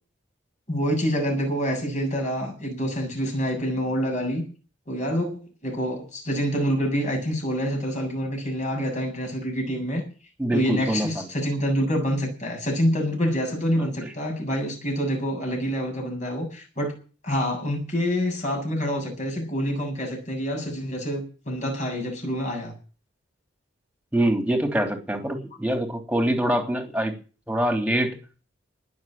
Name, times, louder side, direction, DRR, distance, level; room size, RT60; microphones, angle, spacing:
voice 1, 0.7-4.4 4.9-10.0 10.5-16.9 17.2-22.8, equal, 35° left, 2 dB, 7.6 m, -27 dB
voice 2, 10.4-11.3 13.8-14.1 24.1-27.1 27.5-28.2, right 1 dB, 5° right, 4 dB, 3.3 m, -25 dB
20.0 x 7.1 x 9.0 m, 0.36 s
head